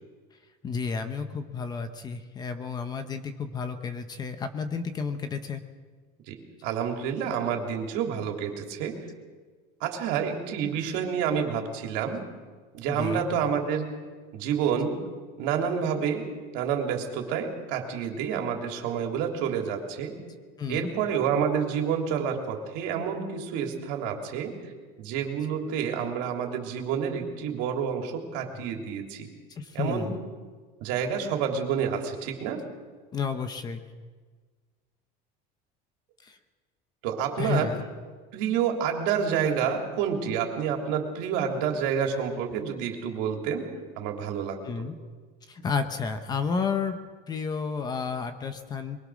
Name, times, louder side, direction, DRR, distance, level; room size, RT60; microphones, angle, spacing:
voice 1, 0.6-5.6 12.9-13.3 20.6-20.9 29.6-30.2 33.1-33.8 37.4-37.7 44.6-45.0 45.5-47.0 47.3-49.1, left 5 dB, 20° left, 8 dB, 1.0 m, -31 dB
voice 2, 6.6-9.1 9.8-12.3 12.7-13.9 14.3-15.0 15.4-20.1 20.7-24.7 25.0-29.3 29.7-30.2 30.8-32.6 37.0-37.7 38.3-43.7 44.0-44.9, right 7 dB, 65° right, 3 dB, 3.3 m, -29 dB
23.0 x 22.0 x 6.4 m, 1.4 s
cardioid pair, 180°, 19 cm